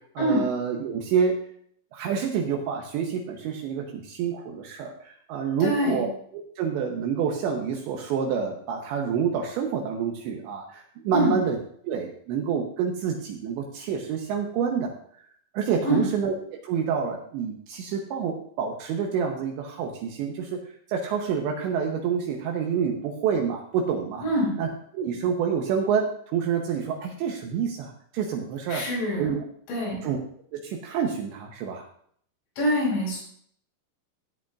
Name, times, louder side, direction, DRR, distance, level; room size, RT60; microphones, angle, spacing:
voice 1, 0.2-1.4 1.9-6.1 6.3-11.6 11.8-15.0 15.5-20.6 20.9-24.2 24.6-24.7 24.9-28.8 29.2-29.4 30.0-30.2 30.5-31.8, right 7 dB, 80° right, 1 dB, 3.0 m, -28 dB
voice 2, 5.6-6.0 11.1-11.4 15.8-16.0 24.2-24.5 28.7-29.3 29.7-30.0 32.6-33.2, equal, 80° left, -4 dB, 7.9 m, -24 dB
17.0 x 8.8 x 2.5 m, 0.63 s
omnidirectional pair, 5.5 m